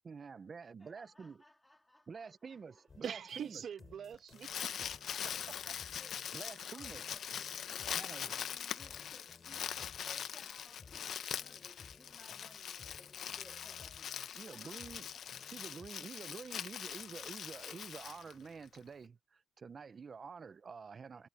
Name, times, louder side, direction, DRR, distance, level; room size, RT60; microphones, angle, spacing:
voice 1, 0.0-1.4 2.1-3.6 6.3-7.0 7.9-8.3 14.4-15.1 15.5-21.3, right 5 dB, 40° right, 0.8 m, -49 dB
voice 2, 0.8-2.8 3.3-3.4 5.0-6.4 6.7-14.2 14.5-15.3, left 1 dB, 10° left, 2.2 m, -62 dB
sound 1, 2.9-15.9, left 4 dB, 35° left, 7.9 m, -59 dB
voice 3, 3.0-5.8, right 8 dB, 60° right, 1.3 m, -45 dB
Crumpling crinkling, 4.1-18.8, left 9 dB, 65° left, 0.7 m, -42 dB
cardioid pair, 90°, 0 cm